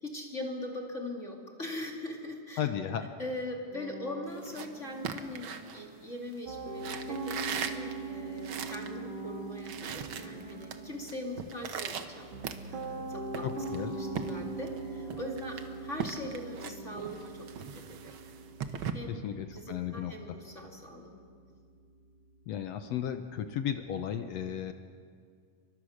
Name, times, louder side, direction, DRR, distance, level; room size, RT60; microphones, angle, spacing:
voice 1, 0.0-2.6 3.2-12.3 12.7-17.5 17.7-18.1 18.7-19.2 19.5-21.2, left 1 dB, 25° left, 0 dB, 2.4 m, -41 dB
voice 2, 2.6-3.1 13.4-14.0 19.1-20.1 22.5-24.7, left 9 dB, 75° left, 8 dB, 1.5 m, -34 dB
sound 1, 3.7-6.6 7.2-12.0 12.3-17.2, equal, 10° right, 5.4 m, -50 dB
sound 2, 4.3-6.3 6.8-8.9 9.3-9.4 9.5-10.8 11.1-13.0 13.3-14.8 15.1-18.9, right 7 dB, 85° right, 1.1 m, -39 dB
Piano, 6.5-23.6, right 3 dB, 65° right, 2.9 m, -42 dB
29.5 x 24.0 x 6.5 m, 2.1 s
omnidirectional pair, 4.0 m